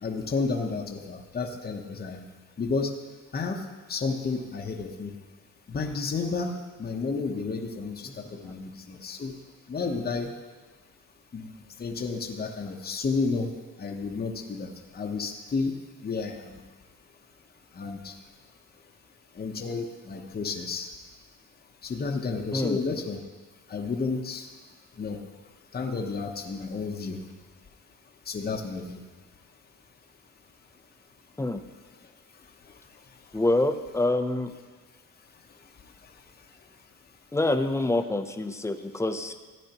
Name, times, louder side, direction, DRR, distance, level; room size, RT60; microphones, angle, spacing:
voice 1, 0.0-2.3 2.6-2.9 3.3-3.6 3.9-5.1 5.7-9.3 9.7-10.3 11.3-11.5 11.8-13.5 13.8-16.6 17.7-18.1 19.4-20.9 21.8-23.2 23.7-24.5 25.0-25.2 25.7-27.2 28.3-29.0, left 4 dB, 30° left, 2 dB, 0.9 m, -31 dB
voice 2, 33.3-34.5 37.3-39.3, left 2 dB, 10° left, 7 dB, 0.6 m, -26 dB
15.0 x 9.3 x 3.0 m, 1.3 s
cardioid pair, 110°, 32 cm